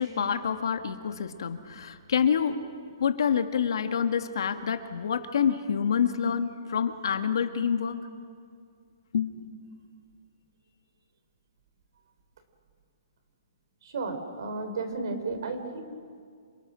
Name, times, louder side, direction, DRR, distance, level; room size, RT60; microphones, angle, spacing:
voice 1, 0.0-2.6 3.0-8.0 9.1-9.3, left 7 dB, 65° left, 7 dB, 1.8 m, -27 dB
voice 2, 13.8-15.8, right 3 dB, 55° right, 8 dB, 3.9 m, -33 dB
28.5 x 26.5 x 6.3 m, 2.1 s
hypercardioid pair, 175°, 3 cm